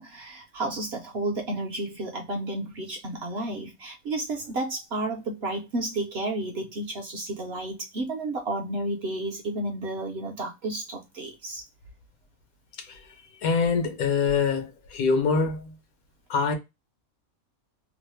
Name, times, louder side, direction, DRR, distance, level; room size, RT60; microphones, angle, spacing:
voice 1, 0.0-11.6, right 2 dB, 60° right, 0.7 m, -32 dB
voice 2, 13.4-15.7 16.3-16.5, left 5 dB, 80° left, 1.3 m, -24 dB
2.9 x 2.0 x 3.1 m
omnidirectional pair, 1.5 m